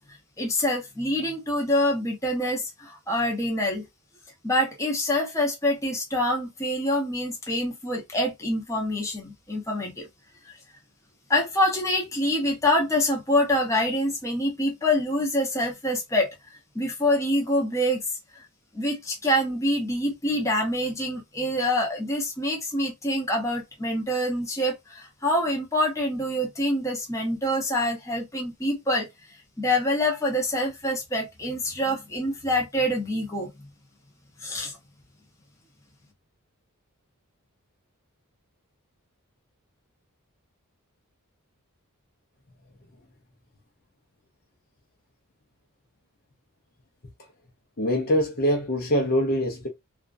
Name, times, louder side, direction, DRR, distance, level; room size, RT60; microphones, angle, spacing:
voice 1, 0.4-3.8 4.4-10.1 11.3-16.3 16.7-18.0 18.7-29.1 29.6-33.5 34.4-34.8, left 1 dB, 15° left, 0.9 m, -26 dB
voice 2, 47.8-49.7, equal, 40° left, 0.7 m, -24 dB
2.8 x 2.4 x 2.4 m
head